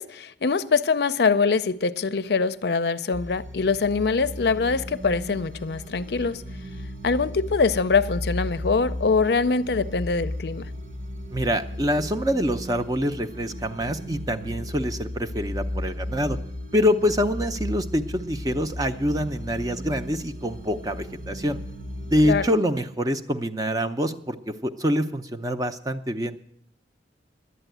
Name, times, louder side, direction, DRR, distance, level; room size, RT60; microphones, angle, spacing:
voice 1, 0.0-6.5 7.0-10.7 22.2-22.5, left 4 dB, 65° left, 0.5 m, -23 dB
sound 1, 3.1-22.5, left 1 dB, 50° right, 1.1 m, -35 dB
voice 2, 11.3-16.4 16.7-21.6 22.0-26.4, equal, 20° right, 0.6 m, -25 dB
11.0 x 9.1 x 9.1 m
head